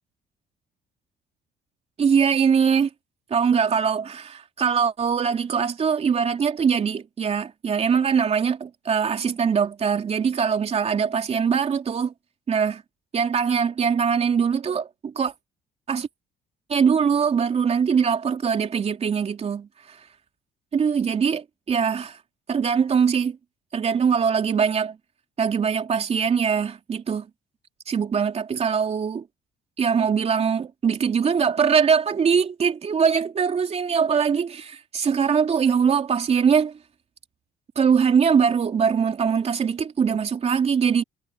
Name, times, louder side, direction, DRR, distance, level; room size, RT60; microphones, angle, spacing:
voice 1, 2.0-2.9 3.3-12.1 12.5-12.8 13.1-15.3 15.9-16.1 16.7-20.0 20.7-22.2 22.5-23.4 23.7-25.0 25.4-27.3 27.9-29.3 29.8-36.8 37.7-41.0, right 6 dB, 40° right, 3.1 m, -22 dB
cardioid pair, 110°, 17 cm